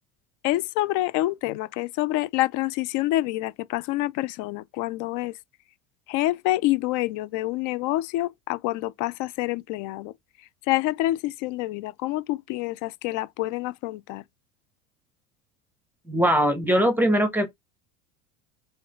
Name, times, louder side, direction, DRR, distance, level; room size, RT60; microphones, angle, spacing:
voice 1, 0.4-5.3 6.1-10.1 10.7-14.2, left 17 dB, 55° left, 0.5 m, -27 dB
voice 2, 16.1-17.5, equal, 5° right, 1.0 m, -21 dB
3.8 x 3.1 x 3.0 m
hypercardioid pair, 85°, 37 cm